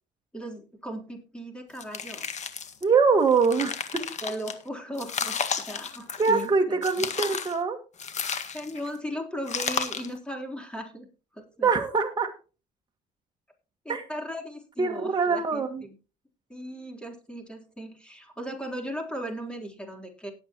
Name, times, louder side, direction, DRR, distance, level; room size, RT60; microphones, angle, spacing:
voice 1, 0.3-2.3 4.2-7.1 8.5-11.1 11.3-11.7 13.8-15.9 16.5-20.3, equal, 5° left, 2 dB, 3.7 m, -37 dB
sound 1, 1.8-2.8 3.3-4.5 5.0-6.5 6.8-7.6 8.0-8.9 9.5-10.2, left 6 dB, 45° left, 1.7 m, -32 dB
voice 2, 2.8-4.0 6.2-7.8 11.6-12.3 13.9-14.0 14.8-15.8, right 5 dB, 25° right, 3 dB, 1.6 m, -23 dB
18.0 x 8.1 x 3.0 m, 0.33 s
cardioid pair, 110°, 17 cm